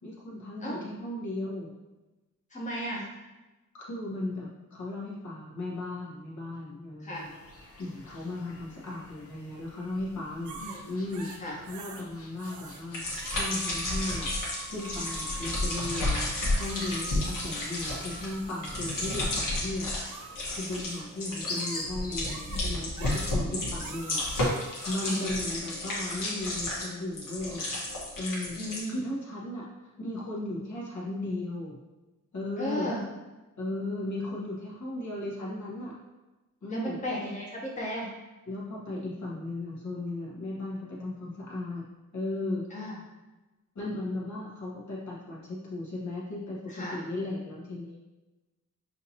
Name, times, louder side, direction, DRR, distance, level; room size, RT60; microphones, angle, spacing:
voice 1, 0.0-1.7 3.7-7.3 7.8-10.6 10.9-11.3 11.6-19.9 20.5-24.2 24.8-27.7 28.2-28.6 28.9-29.7 30.0-31.8 32.3-32.9 33.6-36.0 36.6-37.0 38.5-41.8 42.1-42.7 43.7-46.6 46.9-48.0, left 2 dB, 60° left, -5 dB, 1.3 m, -36 dB
voice 2, 2.5-3.1 7.0-7.3 10.6-10.9 11.4-11.6 22.5-22.7 23.5-23.7 25.1-25.3 28.6-29.0 32.6-33.0 36.7-38.1 42.7-43.0 46.7-47.0, equal, 25° left, -4 dB, 1.0 m, -35 dB
sound 1, 7.1-22.3, left 2 dB, 45° left, 0.8 m, -47 dB
sound 2, 10.4-12.1 12.4-12.8 13.1-19.5 20.0-21.1 21.5-21.9 22.2-22.6 22.9-23.4 23.8-25.3, right 5 dB, 65° right, 0.5 m, -45 dB
sound 3, 12.9-20.1 20.3-20.9 21.2-28.8, left 1 dB, 80° left, 1.4 m, -32 dB
5.7 x 2.9 x 2.8 m, 1.1 s
wide cardioid pair, 90°, 32 cm